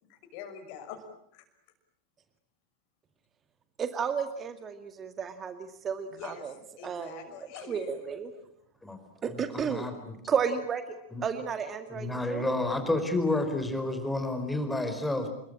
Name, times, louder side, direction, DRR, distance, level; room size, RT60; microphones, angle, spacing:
voice 1, 0.3-1.0 1.3-1.4 6.0-7.9, left 7 dB, 45° left, 6.0 m, -44 dB
voice 2, 3.8-6.5 6.8-7.2 7.7-8.3 9.4-9.8 10.3-11.0 11.2-12.4, right 6 dB, 25° right, 2.1 m, -32 dB
voice 3, 9.3-10.2 11.1-11.3 11.9-15.3, left 2 dB, 5° left, 4.7 m, -30 dB
29.5 x 22.5 x 8.9 m
figure-of-eight pair, 90°, 0 cm